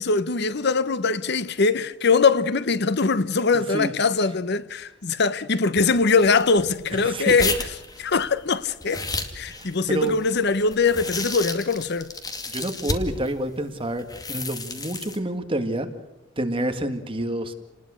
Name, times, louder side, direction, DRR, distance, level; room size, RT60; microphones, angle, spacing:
voice 1, 0.0-7.6 8.0-9.0 9.3-12.1, left 4 dB, 60° left, 0.9 m, -22 dB
sound 1, 5.8-13.3 14.0-15.2, left 3 dB, 20° left, 2.3 m, -32 dB
voice 2, 7.0-7.3 9.5-10.1 12.5-15.9 16.4-17.5, right 1 dB, 30° right, 1.8 m, -28 dB
29.0 x 20.0 x 6.4 m
head